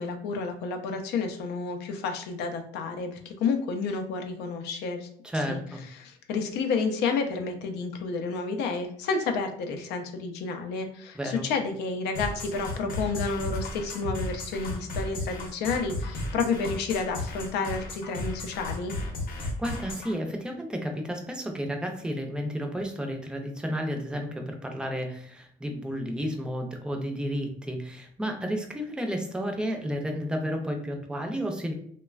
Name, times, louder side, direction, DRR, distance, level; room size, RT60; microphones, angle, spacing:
voice 1, 0.0-5.1 5.5-5.6 6.0-18.9, left 4 dB, 85° left, 5 dB, 0.5 m, -30 dB
voice 2, 5.2-5.8 11.1-11.4 19.4-31.7, equal, 5° right, 3 dB, 0.5 m, -32 dB
sound 1, 12.1-20.1, left 2 dB, 55° left, 0.8 m, -34 dB
3.1 x 2.1 x 2.3 m, 0.63 s
cardioid pair, 110°, 17 cm